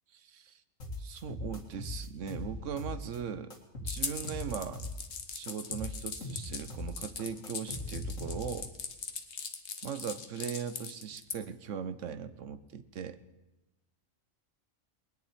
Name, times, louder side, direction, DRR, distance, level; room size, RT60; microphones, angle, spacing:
voice 1, 0.1-0.6 1.0-3.5 3.8-4.8 5.3-8.7 9.8-13.2, right 7 dB, 70° right, 13 dB, 1.2 m, -39 dB
sound 1, 0.8-3.2 3.5-5.2 5.5-8.7, left 2 dB, 80° left, 2.5 m, -40 dB
sound 2, 3.9-11.4, left 6 dB, 60° left, 1.5 m, -40 dB
20.0 x 7.1 x 10.0 m, 1.0 s
omnidirectional pair, 1.4 m